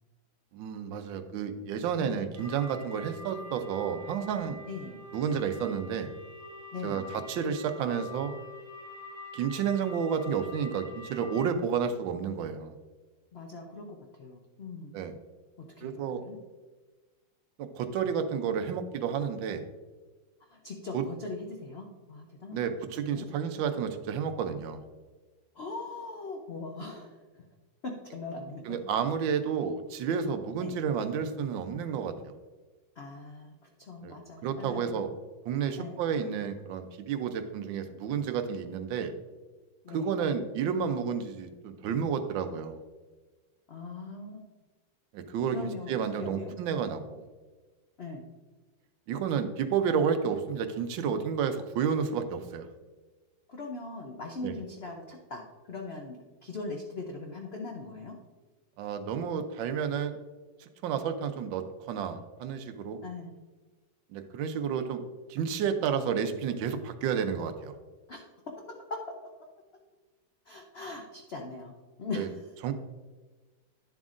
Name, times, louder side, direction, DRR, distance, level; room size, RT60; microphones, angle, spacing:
voice 1, 0.5-4.6 5.1-6.1 6.8-8.4 9.3-12.7 14.9-15.1 15.8-16.2 17.7-19.6 20.9-21.1 22.5-24.8 28.6-32.3 34.0-34.2 34.4-35.1 35.4-39.1 39.9-42.8 45.1-47.2 49.1-52.7 54.4-54.5 58.8-60.2 60.6-63.0 64.1-65.0 65.3-67.8 72.1-72.3 72.6-72.7, right 7 dB, 75° right, 8 dB, 1.4 m, -31 dB
sound 1, 2.3-11.5, left 2 dB, 15° right, 1.4 m, -45 dB
voice 2, 4.7-5.0 6.7-7.2 13.3-13.9 14.1-14.9 15.6-16.4 20.5-22.6 23.1-23.3 25.5-27.4 27.8-28.8 30.6-30.8 33.0-35.0 35.8-36.0 39.8-40.1 43.7-44.5 45.5-46.5 48.0-48.2 53.5-58.2 63.0-63.4 68.1-68.2 68.6-69.5 70.5-71.7 72.0-72.5, left 3 dB, 85° left, 1 dB, 0.5 m, -40 dB
10.0 x 7.3 x 2.5 m, 1.3 s
omnidirectional pair, 2.1 m